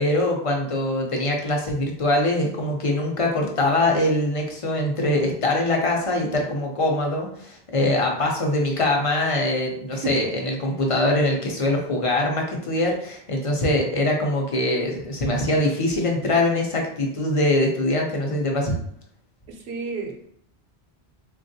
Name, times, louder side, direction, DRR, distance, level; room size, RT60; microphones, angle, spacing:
voice 1, 0.0-18.7, left 1 dB, 45° left, 0 dB, 0.5 m, -23 dB
voice 2, 19.5-20.3, right 5 dB, 75° right, 2 dB, 0.9 m, -32 dB
3.5 x 2.2 x 2.6 m, 0.66 s
omnidirectional pair, 1.1 m